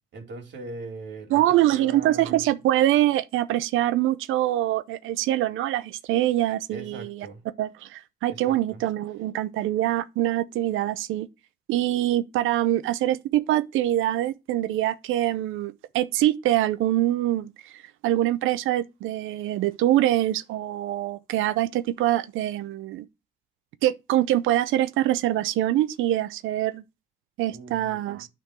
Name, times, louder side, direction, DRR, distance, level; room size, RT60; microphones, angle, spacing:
voice 1, 0.1-2.5 6.7-7.4 8.5-8.8 27.5-28.2, right 3 dB, 65° right, 2.9 m, -40 dB
voice 2, 1.3-7.3 7.6-11.3 11.7-23.1 23.8-26.8 27.4-28.3, right 14 dB, 85° right, 0.5 m, -24 dB
9.2 x 3.8 x 6.0 m
cardioid pair, 90°, 20 cm